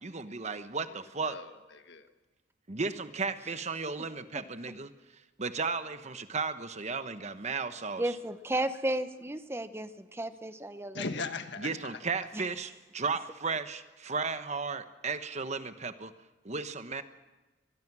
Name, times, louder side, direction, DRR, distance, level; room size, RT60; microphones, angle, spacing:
voice 1, 0.0-1.4 2.7-4.9 5.4-8.1 11.6-16.1 16.4-17.0, right 4 dB, 35° right, 10 dB, 1.1 m, -35 dB
voice 2, 1.2-2.1 10.9-12.0, left 4 dB, 65° left, 8 dB, 1.6 m, -39 dB
voice 3, 8.0-11.0 12.3-12.4, right 1 dB, 15° right, 11 dB, 0.9 m, -33 dB
24.5 x 21.0 x 6.2 m, 1.2 s
head